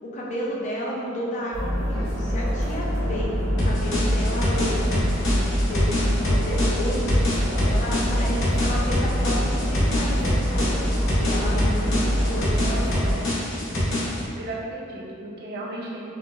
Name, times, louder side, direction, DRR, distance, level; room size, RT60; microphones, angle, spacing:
voice 1, 0.0-3.3 3.6-7.1 7.6-10.8 11.1-13.1 13.6-13.7, equal, 35° left, -4 dB, 0.5 m, -32 dB
sound 1, 1.5-13.1, equal, 80° right, 1.0 m, -25 dB
sound 2, 3.6-14.2, left 1 dB, 65° left, 0.8 m, -26 dB
voice 2, 14.4-16.1, right 2 dB, 55° right, -4 dB, 0.5 m, -35 dB
4.1 x 2.0 x 2.4 m, 2.5 s
head